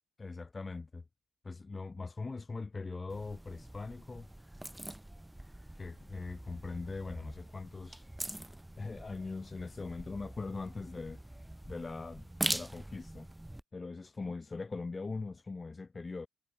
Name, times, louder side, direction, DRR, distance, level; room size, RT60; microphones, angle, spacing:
voice 1, 0.2-1.0 1.4-4.3 5.7-8.1 8.8-11.2 11.7-13.3 13.7-16.3, left 3 dB, 25° left, 2.3 m, -41 dB
sound 1, 3.1-13.6, right 1 dB, 5° right, 6.6 m, -43 dB
cardioid pair, 90°, 0 cm